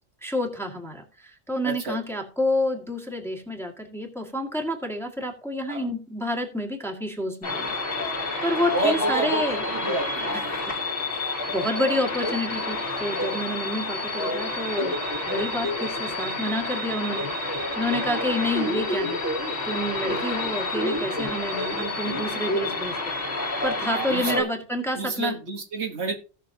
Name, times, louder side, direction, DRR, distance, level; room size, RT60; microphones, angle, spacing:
voice 1, 0.2-8.2 8.4-9.6 10.3-10.8 11.1-15.0 15.3-19.4 19.6-23.0 23.6-25.4, left 1 dB, ahead, 0 dB, 1.9 m, -29 dB
voice 2, 1.6-2.0 5.7-5.9 8.4-10.6 23.8-24.5 24.9-26.1, right 3 dB, 65° right, 4 dB, 1.5 m, -30 dB
sound 1, 7.4-24.4, left 2 dB, 50° left, 2.8 m, -28 dB
17.0 x 6.3 x 2.8 m, 0.36 s
omnidirectional pair, 1.3 m